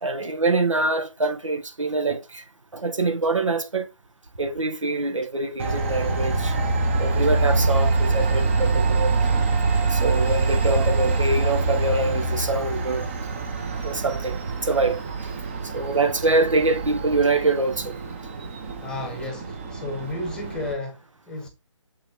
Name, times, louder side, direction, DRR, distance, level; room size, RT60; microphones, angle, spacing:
voice 1, 0.0-2.4 2.7-3.9 4.4-6.5 7.0-9.2 9.7-13.0 13.8-15.0 15.7-17.9, right 3 dB, 75° right, 1.2 m, -24 dB
Train, 5.6-20.7, right 3 dB, 25° right, 1.0 m, -25 dB
voice 2, 18.8-21.5, left 2 dB, 5° left, 1.1 m, -33 dB
6.9 x 6.0 x 3.0 m
figure-of-eight pair, 150°, 17 cm